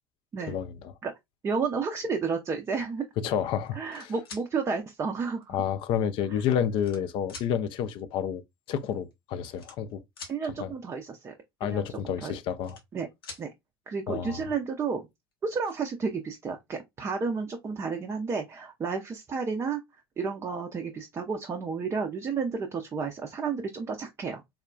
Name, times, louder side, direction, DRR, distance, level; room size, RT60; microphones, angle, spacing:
voice 1, 0.5-0.9 3.2-4.1 5.5-8.4 8.7-10.0 10.6-10.7 11.6-12.8 14.1-14.5, left 9 dB, 45° left, 0.4 m, -30 dB
voice 2, 1.4-3.0 3.7-5.6 10.3-11.3 11.6-12.3 12.9-13.1 13.4-13.5 13.9-15.1 15.4-19.8 20.2-24.4, right 5 dB, 20° right, 0.5 m, -31 dB
sound 1, 3.7-4.5 5.4-5.5 6.4-7.0 7.3-7.5 8.7-8.8 8.9-9.1 9.5-10.4 12.3-13.0 13.2-13.5 14.9-15.0 15.3-15.7, left 4 dB, 75° left, 0.8 m, -45 dB
3.5 x 2.2 x 2.2 m
figure-of-eight pair, 70°, 12 cm